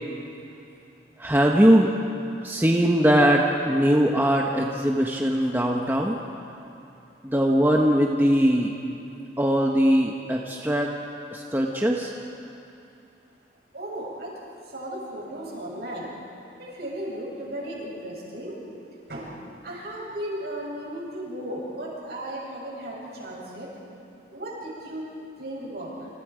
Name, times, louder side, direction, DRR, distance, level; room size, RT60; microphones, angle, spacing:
voice 1, 1.2-1.9 2.4-6.2 7.3-8.7 9.4-10.9 11.3-12.1, equal, 10° right, 0 dB, 1.2 m, -21 dB
voice 2, 13.7-14.3 14.7-16.1 16.6-18.6 19.1-19.3 19.6-23.7 24.3-25.0 25.4-26.1, right 1 dB, 60° right, -4 dB, 7.8 m, -35 dB
28.5 x 27.0 x 5.1 m, 2.7 s
head